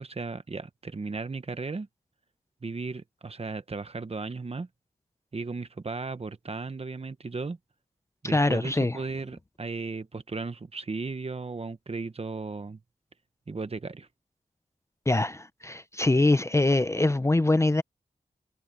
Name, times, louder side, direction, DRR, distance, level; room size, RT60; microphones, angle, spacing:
voice 1, 0.0-1.9 2.6-4.7 5.3-7.6 8.2-12.8 13.5-14.1, right 4 dB, 45° right, 1.2 m, -35 dB
voice 2, 8.2-9.0 15.1-17.8, left 2 dB, 20° left, 0.6 m, -23 dB
wide cardioid pair, 80°, 15 cm